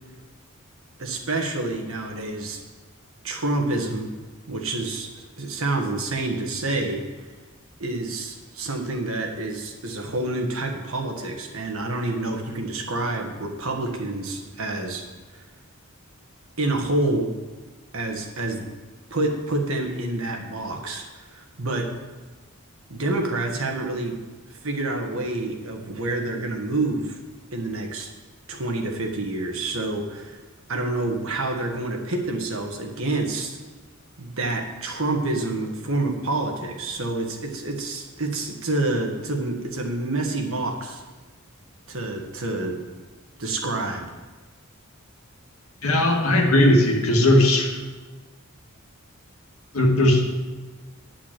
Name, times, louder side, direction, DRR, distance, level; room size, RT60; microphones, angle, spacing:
voice 1, 1.0-2.6 3.2-4.1 4.5-7.0 7.8-15.1 15.3-15.4 16.6-17.3 17.9-18.7 19.1-21.9 22.9-24.2 24.5-27.2 27.5-28.1 28.5-30.4 30.7-33.6 34.2-41.0 41.9-42.8 43.4-44.1, right 2 dB, 75° right, 2 dB, 1.6 m, -28 dB
voice 2, 45.8-47.7 49.7-50.2, left 1 dB, 90° left, 1 dB, 1.8 m, -18 dB
10.5 x 6.0 x 7.5 m, 1.3 s
head